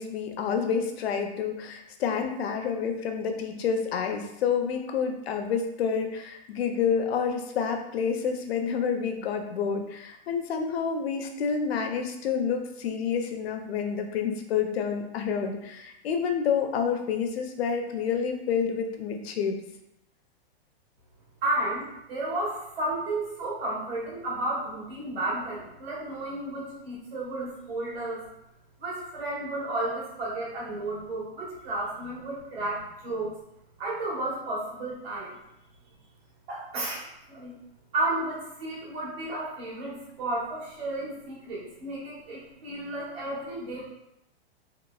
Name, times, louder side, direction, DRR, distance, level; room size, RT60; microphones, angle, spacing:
voice 1, 0.0-19.6, left 6 dB, 75° left, 4 dB, 0.5 m, -28 dB
voice 2, 21.4-28.2 28.8-33.4 33.8-35.4 36.5-37.5 37.9-43.8, right 2 dB, 70° right, -5 dB, 1.3 m, -32 dB
3.0 x 2.2 x 2.2 m, 0.83 s
supercardioid pair, 180°, 31 cm